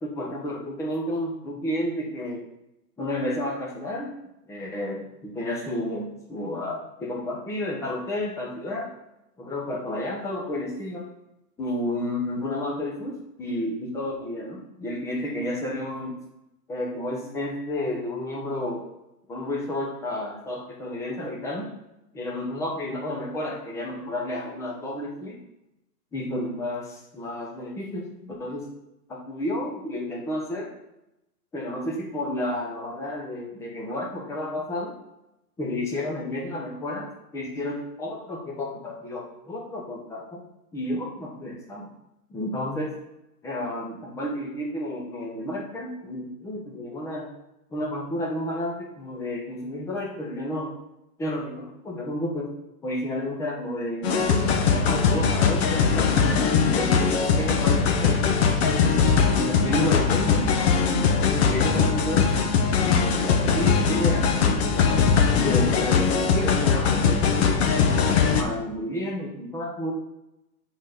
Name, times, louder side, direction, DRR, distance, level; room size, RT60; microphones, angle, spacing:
voice 1, 0.0-2.4 3.0-4.2 4.5-8.9 9.4-11.1 11.6-16.2 16.7-18.8 19.3-21.7 22.1-25.4 26.1-28.7 29.1-30.7 31.5-34.9 35.6-37.1 37.3-40.4 40.7-41.9 42.3-42.9 43.4-47.3 47.7-50.7 51.2-52.5 52.8-58.5 59.3-60.6 61.3-62.3 62.8-67.6 68.0-69.9, left 1 dB, 5° left, -1 dB, 0.8 m, -31 dB
sound 1, 54.0-68.4, left 6 dB, 40° left, 0.9 m, -21 dB
6.4 x 4.0 x 6.5 m, 0.90 s
hypercardioid pair, 150°, 48 cm